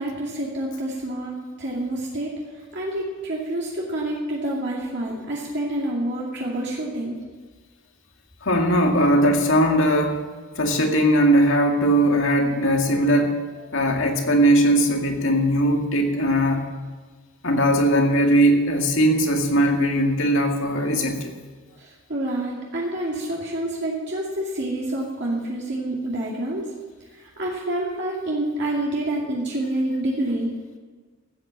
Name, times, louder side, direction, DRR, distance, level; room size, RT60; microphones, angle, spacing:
voice 1, 0.0-2.3 2.7-7.2 21.8-26.7 27.1-30.5, right 1 dB, 50° right, -4 dB, 2.4 m, -28 dB
voice 2, 8.4-10.2 10.6-16.6 17.4-21.3, equal, 60° left, 2 dB, 2.2 m, -19 dB
15.0 x 9.0 x 7.5 m, 1.4 s
head